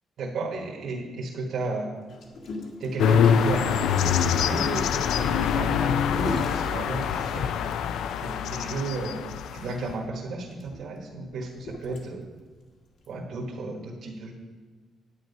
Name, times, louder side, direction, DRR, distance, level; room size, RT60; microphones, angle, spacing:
voice 1, 0.2-1.9 2.8-7.5 8.2-12.2 13.1-14.3, right 3 dB, 60° right, -1 dB, 1.5 m, -34 dB
Gurgling, 2.1-7.6 8.1-8.2 8.5-8.7 9.0-9.1 9.9-12.4 13.0-13.2, left 2 dB, 55° left, 1.6 m, -39 dB
sound 1, 3.0-9.9, left 7 dB, 80° left, 0.5 m, -25 dB
10.0 x 9.2 x 5.5 m, 1.5 s
cardioid pair, 175°, 0 cm